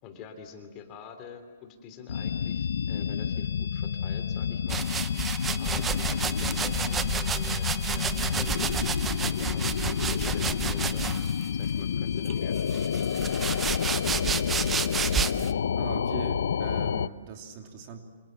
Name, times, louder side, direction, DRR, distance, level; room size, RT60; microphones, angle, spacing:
voice 1, 0.0-4.8 5.6-8.7 9.2-11.2 11.5-14.8, left 6 dB, 25° left, 7 dB, 3.1 m, -46 dB
sound 1, 2.1-17.1, left 7 dB, 75° left, 0.8 m, -29 dB
sound 2, 4.7-11.5 12.3-15.5, right 6 dB, 10° right, 0.7 m, -31 dB
voice 2, 15.7-18.0, right 6 dB, 30° right, 5 dB, 2.9 m, -40 dB
27.5 x 27.0 x 7.5 m, 1.5 s
hypercardioid pair, 165°, 0 cm